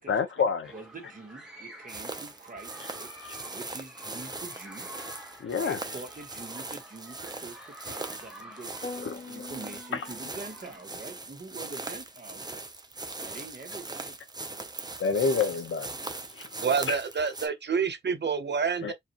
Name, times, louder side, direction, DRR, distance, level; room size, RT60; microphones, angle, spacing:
voice 1, 0.1-0.7 5.4-5.8 9.0-9.2 9.9-10.0 15.0-15.9 16.3-16.5 16.9-17.0 18.8-18.9, left 5 dB, 85° left, 0.9 m, -27 dB
sound 1, 0.6-11.1, equal, 5° right, 1.5 m, -49 dB
voice 2, 0.7-4.9 5.5-8.7 9.0-12.7 13.2-14.2, right 3 dB, 40° right, 1.6 m, -45 dB
sound 2, 1.9-17.5, right 3 dB, 20° right, 0.7 m, -40 dB
sound 3, 8.8-10.8, left 4 dB, 35° left, 0.6 m, -42 dB
voice 3, 16.6-18.9, right 6 dB, 60° right, 0.9 m, -28 dB
4.8 x 2.5 x 3.0 m
wide cardioid pair, 125°, 20 cm